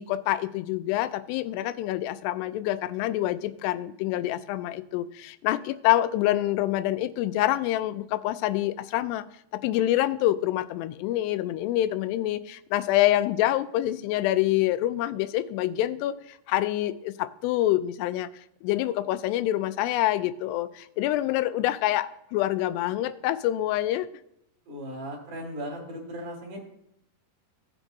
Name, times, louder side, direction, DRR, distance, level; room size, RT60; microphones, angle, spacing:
voice 1, 0.0-9.3 9.5-18.3 18.6-24.1, left 14 dB, 90° left, 12 dB, 2.7 m, -26 dB
voice 2, 24.7-26.6, equal, 40° right, -3 dB, 3.3 m, -37 dB
16.5 x 7.3 x 2.6 m, 0.77 s
omnidirectional pair, 4.7 m